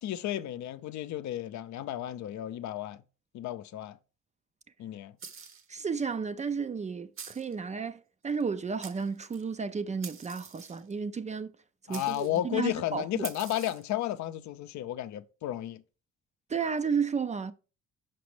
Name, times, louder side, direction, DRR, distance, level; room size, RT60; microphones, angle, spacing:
voice 1, 0.0-3.0 3.3-4.0 4.8-5.2 11.9-15.8, left 12 dB, 70° left, 0.5 m, -33 dB
sound 1, 5.2-5.7 7.2-7.6 8.4-8.5 8.8-9.4 10.0-10.9 11.9-12.4 13.2-13.9, right 6 dB, 45° right, 0.8 m, -45 dB
voice 2, 5.7-11.5 11.9-13.3 16.5-17.5, right 5 dB, 25° right, 0.3 m, -32 dB
5.9 x 5.1 x 3.2 m
cardioid pair, 90°, 30 cm